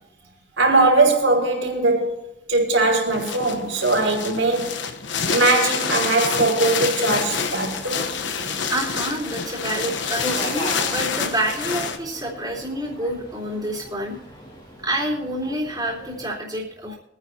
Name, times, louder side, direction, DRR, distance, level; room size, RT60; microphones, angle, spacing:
voice 1, 0.6-2.2 2.5-4.8 5.3-8.1, right 2 dB, 80° right, 5.0 m, -20 dB
sound 1, 3.1-12.0, left 6 dB, 65° left, 1.1 m, -27 dB
Subway metro underground, 7.2-16.3, equal, 25° left, 2.4 m, -38 dB
voice 2, 8.5-14.2 14.8-17.0, right 1 dB, 20° right, 3.7 m, -28 dB
24.0 x 9.9 x 2.9 m
head